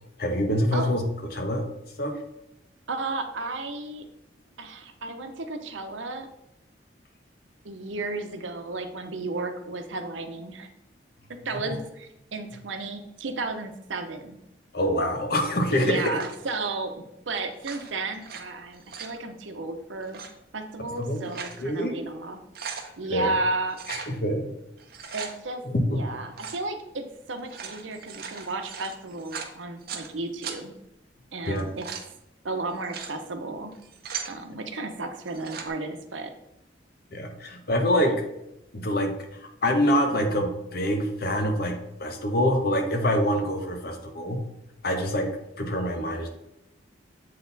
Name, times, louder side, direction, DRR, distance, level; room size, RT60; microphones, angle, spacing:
voice 1, 0.2-1.0 1.3-1.6 2.0-2.2 11.6-11.7 14.7-16.2 21.0-21.3 21.6-22.0 23.1-23.3 23.9-24.5 25.0-25.2 25.7-26.0 31.5-31.6 37.1-38.2 38.7-39.2 39.6-44.4 44.8-45.3 45.6-46.3, equal, 55° left, 5 dB, 1.0 m, -25 dB
voice 2, 2.9-4.1 4.6-6.3 7.6-10.7 11.3-14.4 15.7-20.2 20.5-22.4 23.0-23.8 25.1-30.7 31.3-31.9 32.4-33.7 34.3-36.3 38.0-38.1, right 3 dB, 90° right, 7 dB, 0.8 m, -33 dB
sound 1, 16.1-16.5 17.5-18.4 18.7-19.2 20.0-20.3 21.0-21.6 22.0-22.1 22.4-22.9 23.7-24.1 24.8-25.3 26.3-26.6 27.4-30.1 30.4-30.6 31.4-32.1 32.7-33.1 33.7-34.3 35.2-35.7, right 6 dB, 55° right, 0.8 m, -38 dB
7.4 x 4.2 x 4.0 m, 0.85 s
head